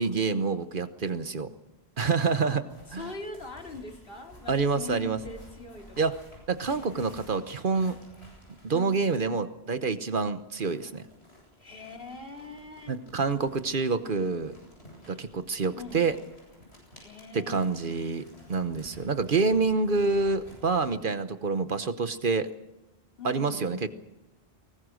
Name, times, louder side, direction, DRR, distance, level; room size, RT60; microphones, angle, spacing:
voice 1, 0.0-1.5 2.0-2.6 2.9-3.1 4.5-5.2 6.0-6.1 6.5-8.0 8.6-11.0 12.9-14.5 15.1-16.2 17.3-22.5 23.2-23.9, right 4 dB, 55° right, 11 dB, 1.1 m, -27 dB
sound 1, 2.7-9.3 10.5-20.9, left 1 dB, 80° left, 8.5 m, -53 dB
voice 2, 2.9-6.2 8.7-9.1 11.6-13.0 15.7-16.0 17.0-17.9 23.2-23.8, left 3 dB, 60° left, 3 dB, 2.9 m, -42 dB
24.0 x 19.5 x 6.3 m, 1.0 s
omnidirectional pair, 1.1 m